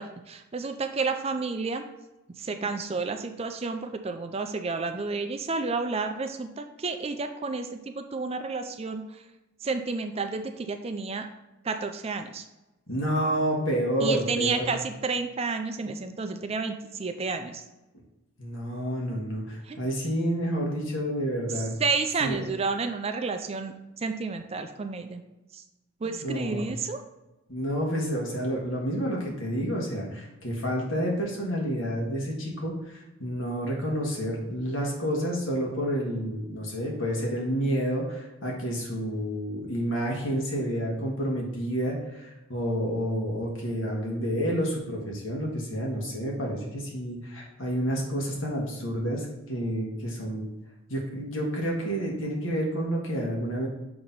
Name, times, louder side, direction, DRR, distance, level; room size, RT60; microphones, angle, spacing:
voice 1, 0.0-1.8 2.4-9.2 9.6-11.3 11.6-12.4 14.0-17.6 19.7-19.8 21.5-25.2 25.5-25.6 26.0-27.0, right 4 dB, 30° right, 7 dB, 0.4 m, -31 dB
voice 2, 12.9-14.8 18.4-21.7 22.2-22.4 26.2-26.7 27.5-32.8 33.2-50.4 50.9-53.7, equal, 70° left, -2 dB, 1.6 m, -29 dB
6.5 x 3.0 x 5.3 m, 1.0 s
head